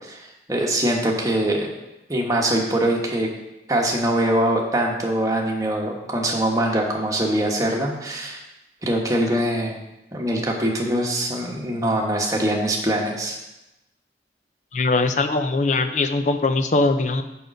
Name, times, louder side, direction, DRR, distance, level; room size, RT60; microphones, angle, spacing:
voice 1, 0.0-1.7 2.1-3.3 3.7-8.4 8.8-9.8 10.1-13.4, right 1 dB, 20° right, -1 dB, 1.2 m, -23 dB
voice 2, 14.7-17.2, left 3 dB, 45° left, 9 dB, 0.5 m, -21 dB
6.7 x 5.2 x 6.4 m, 0.95 s
head